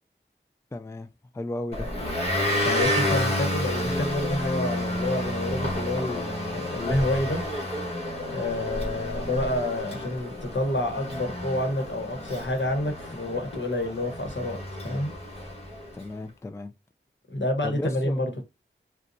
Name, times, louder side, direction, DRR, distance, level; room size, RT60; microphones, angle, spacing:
voice 1, 0.7-1.1 1.3-1.9 15.9-16.7 17.6-18.2, left 2 dB, 15° left, 0.3 m, -34 dB
Motor vehicle (road) / Engine, 1.7-15.9, left 1 dB, 30° left, 1.5 m, -30 dB
voice 2, 2.6-7.4 8.3-14.6 14.8-15.1 17.3-18.4, left 1 dB, 70° left, 1.1 m, -28 dB
3.9 x 2.2 x 2.6 m
wide cardioid pair, 40°, 20 cm